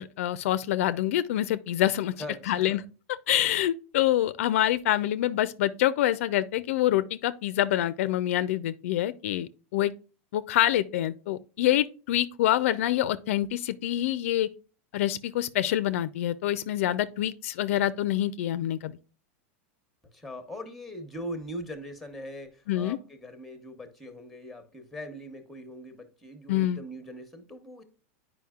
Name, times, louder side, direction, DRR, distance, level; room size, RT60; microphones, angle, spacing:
voice 1, 0.0-2.1 2.5-2.8 3.3-9.9 10.3-14.5 14.9-19.0 22.7-23.0 26.5-26.8, left 13 dB, 70° left, 0.4 m, -26 dB
voice 2, 2.2-2.8 20.1-27.8, equal, ahead, 1.0 m, -41 dB
9.3 x 5.0 x 2.3 m
supercardioid pair, 150°, 8 cm